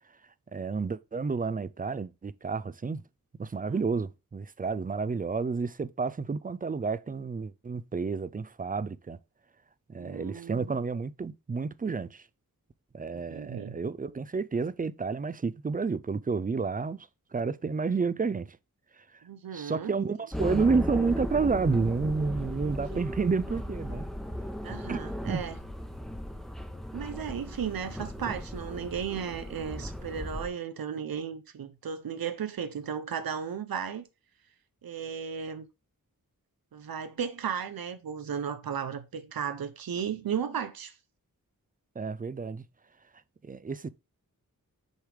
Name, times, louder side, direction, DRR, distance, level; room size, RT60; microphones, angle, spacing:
voice 1, 0.5-3.0 3.4-9.2 9.9-12.2 12.9-18.6 19.5-24.1 24.9-25.0 25.2-25.4 42.0-42.6 43.4-43.9, right 4 dB, 25° right, 0.4 m, -30 dB
voice 2, 10.0-10.8 13.1-13.8 19.2-19.9 22.9-23.0 24.6-25.6 26.9-34.1 34.8-35.7 36.7-41.0, right 7 dB, 90° right, 0.6 m, -35 dB
sound 1, 20.3-30.5, equal, ahead, 0.9 m, -36 dB
6.4 x 3.3 x 4.8 m
wide cardioid pair, 70°, 35 cm